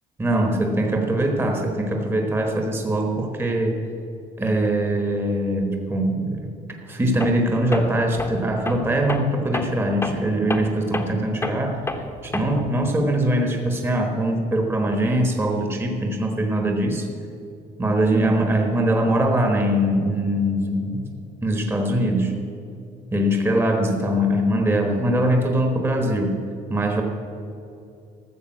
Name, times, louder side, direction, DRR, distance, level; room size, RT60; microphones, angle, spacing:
voice 1, 0.2-3.8 4.4-6.5 6.9-11.8 12.2-17.1 17.8-21.1 21.4-22.4 23.1-27.0, right 1 dB, 15° right, 3 dB, 1.3 m, -22 dB
Tools, 7.2-7.4 7.7-12.8, left 2 dB, 15° left, 1.1 m, -30 dB
13.5 x 6.8 x 7.7 m, 2.7 s
cardioid pair, 110°, 17 cm